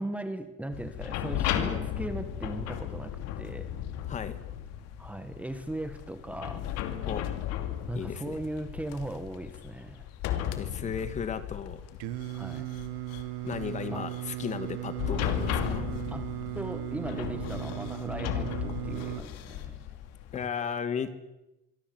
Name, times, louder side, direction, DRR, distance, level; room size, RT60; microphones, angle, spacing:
voice 1, 0.0-3.7 5.0-6.7 7.9-10.1 12.3-12.7 13.9-14.1 16.1-16.3 16.5-19.8, right 1 dB, 5° right, 9 dB, 1.2 m, -38 dB
sound 1, 0.7-20.5, left 10 dB, 55° left, 2.8 m, -35 dB
voice 2, 4.1-4.4 7.0-7.3 7.9-8.4 10.5-11.8 13.4-15.9 20.3-21.1, left 7 dB, 25° left, 12 dB, 1.6 m, -35 dB
Singing, 12.0-19.2, right 18 dB, 85° right, 1.8 m, -37 dB
25.5 x 24.5 x 7.8 m, 0.95 s
cardioid pair, 175°, 29 cm